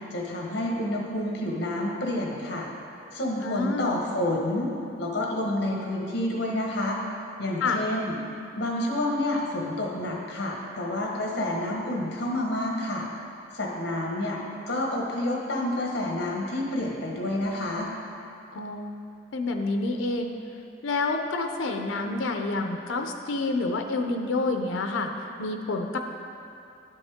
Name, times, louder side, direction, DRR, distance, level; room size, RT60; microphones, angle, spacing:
voice 1, 0.1-2.7 3.1-4.7 5.0-7.0 7.4-8.2 8.6-13.1 13.5-14.4 14.7-17.9, left 1 dB, 60° left, -1 dB, 1.3 m, -29 dB
voice 2, 3.4-4.0 7.6-7.8 18.5-18.9 19.3-20.3 20.8-25.1 25.4-26.0, left 3 dB, 90° left, 4 dB, 0.6 m, -28 dB
11.5 x 5.3 x 3.6 m, 2.6 s
head